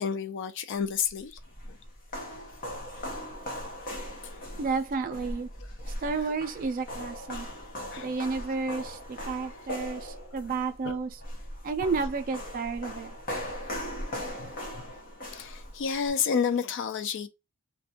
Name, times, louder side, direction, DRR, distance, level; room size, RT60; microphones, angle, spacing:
voice 1, 0.0-1.8 4.2-4.6 7.9-8.1 10.8-11.0 14.4-14.8 15.3-17.3, left 7 dB, 55° left, 0.4 m, -31 dB
sound 1, 1.1-16.1, equal, 40° left, 0.8 m, -39 dB
voice 2, 4.6-5.5 5.8-7.5 8.0-11.2 11.6-13.1, right 4 dB, 40° right, 0.4 m, -31 dB
2.4 x 2.2 x 2.7 m
head